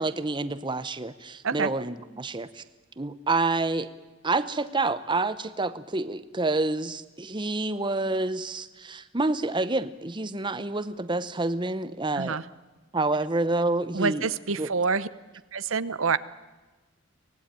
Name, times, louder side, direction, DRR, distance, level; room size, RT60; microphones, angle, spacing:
voice 1, 0.0-2.6 3.0-3.9 4.2-12.4 12.9-14.3 14.6-14.7, right 2 dB, 20° right, 13 dB, 0.8 m, -28 dB
voice 2, 13.9-15.1 15.5-16.2, right 5 dB, 70° right, 15 dB, 0.9 m, -26 dB
24.5 x 19.5 x 9.1 m, 1.2 s
head